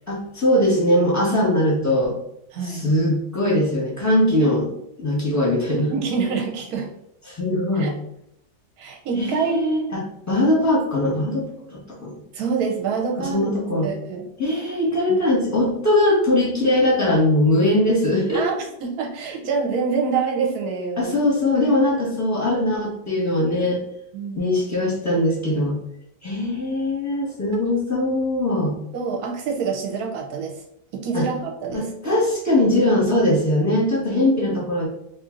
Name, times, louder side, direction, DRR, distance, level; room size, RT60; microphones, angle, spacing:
voice 1, 0.1-2.1 2.6-4.7 5.0-5.9 7.3-7.9 9.1-11.5 11.7-12.1 13.2-13.9 14.4-18.4 21.0-23.8 24.4-25.8 26.2-28.8 31.1-31.3 31.7-34.9, left 1 dB, 15° left, -5 dB, 0.8 m, -21 dB
voice 2, 2.5-2.9 5.9-6.9 7.8-7.9 8.8-9.6 12.3-13.4 13.8-14.3 15.1-15.2 18.3-21.2 24.1-24.6 27.5-27.6 28.9-30.5 30.9-31.9, right 5 dB, 65° right, 1 dB, 1.1 m, -26 dB
3.0 x 2.7 x 3.7 m, 0.78 s
omnidirectional pair, 1.9 m